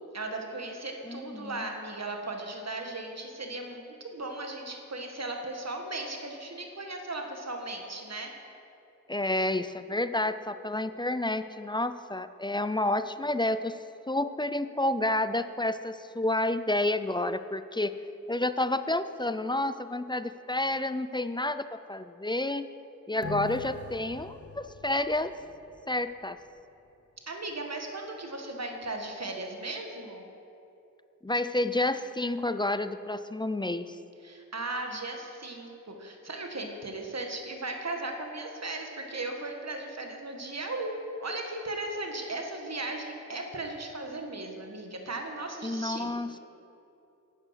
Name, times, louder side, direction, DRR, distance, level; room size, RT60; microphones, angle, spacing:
voice 1, 0.1-8.3 27.3-30.3 34.2-46.2, right 2 dB, 50° right, 3 dB, 1.5 m, -37 dB
voice 2, 1.1-1.6 9.1-13.8 14.1-17.9 18.3-22.7 23.1-25.3 25.9-26.4 31.2-34.0 45.6-46.3, left 1 dB, 15° left, 12 dB, 0.4 m, -30 dB
sound 1, 23.2-26.1 26.5-26.6, left 3 dB, 45° left, 0.8 m, -42 dB
10.0 x 9.0 x 5.8 m, 2.8 s
cardioid pair, 50°, 33 cm